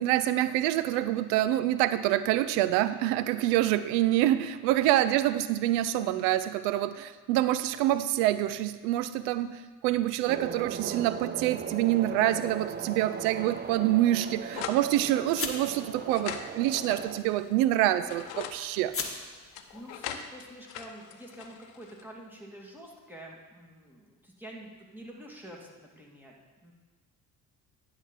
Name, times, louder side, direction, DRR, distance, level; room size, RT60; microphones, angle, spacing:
voice 1, 0.0-18.9, right 14 dB, 85° right, 13 dB, 0.5 m, -26 dB
sound 1, 10.3-17.2, right 6 dB, 25° right, 0.5 m, -38 dB
sound 2, 12.3-20.1, left 4 dB, 30° left, 1.3 m, -43 dB
sound 3, 14.5-14.8 15.7-17.5 17.9-18.6 19.5-22.0, left 9 dB, 80° left, 0.7 m, -41 dB
voice 2, 19.4-26.7, right 1 dB, 5° right, -2 dB, 2.1 m, -48 dB
10.5 x 3.8 x 7.2 m, 1.3 s
supercardioid pair, 65°, 42 cm